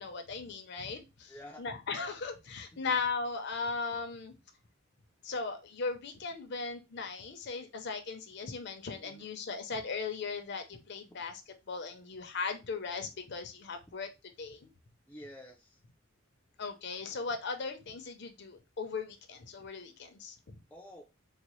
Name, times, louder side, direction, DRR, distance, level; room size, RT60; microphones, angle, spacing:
voice 1, 0.0-1.3 1.6-4.3 5.2-11.4 11.7-14.1 14.4-14.7 16.6-20.5, left 4 dB, 55° left, 0.6 m, -38 dB
voice 2, 1.3-1.6 2.7-2.9 9.0-9.3 11.1-11.2 15.1-15.8 20.7-21.0, left 1 dB, 10° left, 0.4 m, -50 dB
3.9 x 2.1 x 3.0 m
head